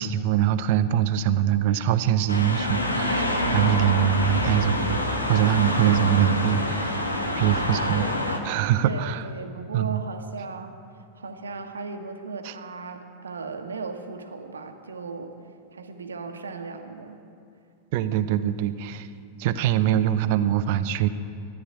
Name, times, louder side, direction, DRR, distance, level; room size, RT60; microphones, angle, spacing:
voice 1, 0.0-6.9 7.4-8.1 8.4-9.2 9.7-10.0 12.4-12.5 17.9-19.1 19.4-21.1, right 10 dB, 50° right, 12 dB, 0.6 m, -23 dB
sound 1, 2.3-8.4, left 1 dB, 80° left, 1.4 m, -26 dB
voice 2, 8.8-15.3 15.7-17.2, right 4 dB, 70° right, 6 dB, 1.2 m, -37 dB
14.0 x 9.5 x 8.7 m, 2.5 s
figure-of-eight pair, 90°, 0 cm